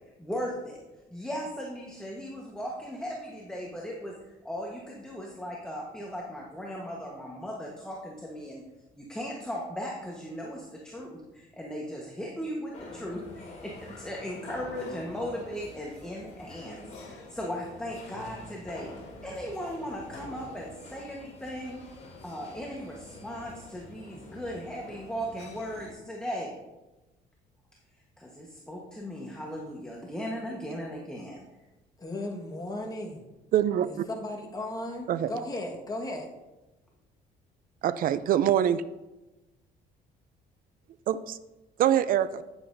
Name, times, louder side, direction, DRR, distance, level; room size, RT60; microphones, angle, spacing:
voice 1, 0.2-0.8 1.1-8.6 9.0-18.9 19.2-21.8 22.2-26.5 27.9-31.4, equal, 5° left, -2 dB, 1.2 m, -37 dB
sound 1, 12.7-25.9, left 2 dB, 40° left, 2.8 m, -46 dB
voice 2, 32.0-33.2 33.8-36.3, left 1 dB, 20° left, 1 dB, 1.5 m, -36 dB
voice 3, 33.5-33.9 35.1-35.3 37.8-38.8 41.1-41.4 41.8-42.4, right 10 dB, 55° right, 14 dB, 0.5 m, -24 dB
9.3 x 8.9 x 2.7 m, 1.1 s
cardioid pair, 110°, 17 cm